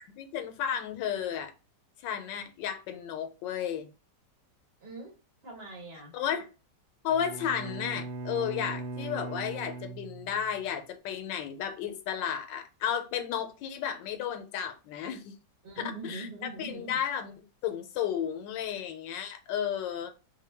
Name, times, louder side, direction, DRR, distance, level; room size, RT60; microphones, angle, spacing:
voice 1, 0.2-1.5 2.0-3.9 6.1-6.5 7.0-15.3 15.8-16.3 16.6-17.3 17.6-20.1, left 8 dB, 90° left, 1.3 m, -33 dB
voice 2, 4.8-5.1 5.4-6.1 15.6-17.0, right 2 dB, 40° right, 1.1 m, -42 dB
Bowed string instrument, 7.1-10.7, right 3 dB, 85° right, 1.4 m, -39 dB
4.2 x 2.1 x 3.3 m
omnidirectional pair, 1.9 m